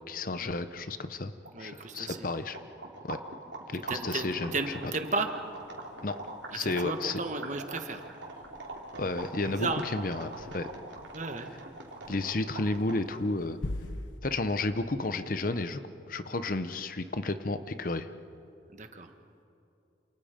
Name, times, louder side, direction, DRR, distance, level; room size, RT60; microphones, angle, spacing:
voice 1, 0.1-1.3 1.6-2.6 3.0-3.2 3.7-4.5 6.0-6.2 6.5-7.2 9.0-10.7 12.1-13.6 14.2-15.8 16.1-18.1, left 2 dB, 45° left, 11 dB, 0.8 m, -32 dB
sound 1, 1.4-13.1, right 2 dB, 75° right, 3.4 m, -43 dB
voice 2, 1.5-2.3 3.7-5.3 6.5-8.0 9.4-9.9 11.1-11.5 18.7-19.1, right 3 dB, 40° right, 6 dB, 1.5 m, -34 dB
sound 2, 3.7-14.2, left 1 dB, 85° left, 1.1 m, -47 dB
28.0 x 28.0 x 5.2 m, 2.6 s
head